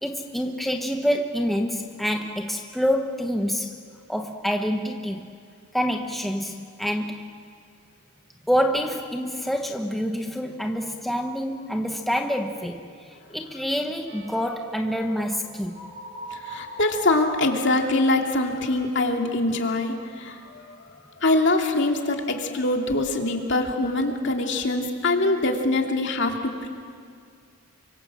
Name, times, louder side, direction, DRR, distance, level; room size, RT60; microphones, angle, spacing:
voice 1, 0.0-3.8 4.1-5.3 5.7-7.3 8.5-15.8, equal, ahead, 3 dB, 1.1 m, -27 dB
sound 1, 14.1-19.8 20.1-20.5 20.9-21.1, right 1 dB, 45° right, 7.2 m, -45 dB
voice 2, 16.3-20.8 21.2-26.7, left 2 dB, 55° left, 2 dB, 2.7 m, -24 dB
29.5 x 25.0 x 7.6 m, 2.2 s
head